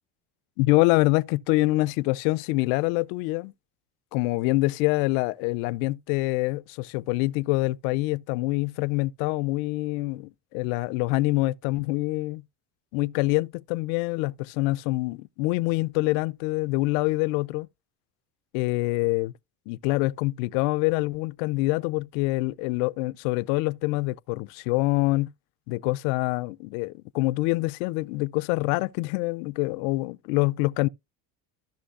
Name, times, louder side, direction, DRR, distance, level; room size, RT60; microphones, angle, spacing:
voice 1, 0.6-3.5 4.1-12.4 12.9-17.7 18.5-19.3 19.7-25.3 25.7-30.9, left 21 dB, 75° left, 0.5 m, -25 dB
14.5 x 6.1 x 2.4 m
supercardioid pair, 90°, 45 cm